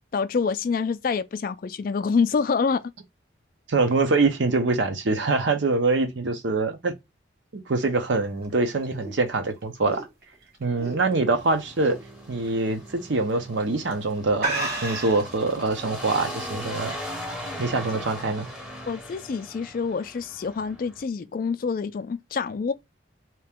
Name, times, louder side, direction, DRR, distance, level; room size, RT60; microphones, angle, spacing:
voice 1, 0.1-2.8 18.9-22.7, left 5 dB, 45° left, 0.3 m, -26 dB
voice 2, 3.7-6.9 7.7-10.0 10.6-11.9 12.3-16.9 17.6-18.5, right 3 dB, 70° right, 0.7 m, -24 dB
sound 1, 8.2-11.4 11.8-12.1 12.5-12.6 13.4-13.6 13.9-14.0 14.4-15.3, right 2 dB, 50° right, 1.4 m, -31 dB
sound 2, 11.4-21.0, equal, 5° right, 0.7 m, -39 dB
2.9 x 2.8 x 3.4 m
head